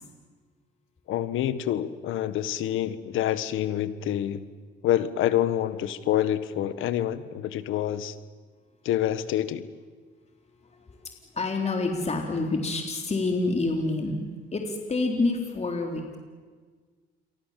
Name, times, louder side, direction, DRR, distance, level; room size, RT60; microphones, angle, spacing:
voice 1, 1.1-4.4 4.8-8.1 8.8-9.6, left 11 dB, 85° left, 14 dB, 1.5 m, -27 dB
voice 2, 11.4-14.2 14.5-16.2, left 3 dB, 35° left, 2 dB, 3.8 m, -27 dB
29.0 x 23.5 x 7.6 m, 1.5 s
cardioid pair, 90°, 20 cm